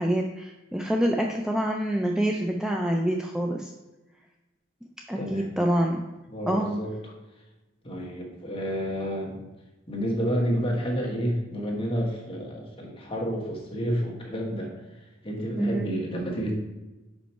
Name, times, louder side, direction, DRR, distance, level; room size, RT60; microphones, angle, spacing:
voice 1, 0.0-3.7 5.1-6.0 6.5-6.8 15.5-15.9, right 1 dB, 5° right, 1 dB, 0.4 m, -26 dB
voice 2, 5.1-5.5 6.3-7.1 7.8-9.5 9.9-14.7 15.2-16.5, equal, 30° left, -1 dB, 1.4 m, -30 dB
5.4 x 5.2 x 4.4 m, 1.1 s
head